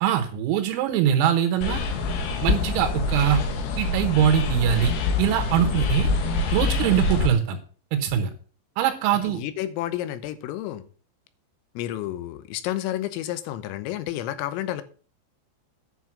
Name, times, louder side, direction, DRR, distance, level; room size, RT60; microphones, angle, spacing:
voice 1, 0.0-1.8 2.4-3.4 3.8-4.9 5.2-6.1 6.5-7.6 7.9-8.3 8.8-9.4, right 9 dB, 85° right, 6 dB, 3.8 m, -22 dB
sound 1, 1.6-7.3, left 3 dB, 65° left, 2.8 m, -25 dB
voice 2, 9.3-10.9 11.8-14.8, left 13 dB, 85° left, 12 dB, 3.6 m, -30 dB
10.5 x 6.2 x 7.2 m, 0.40 s
omnidirectional pair, 6.0 m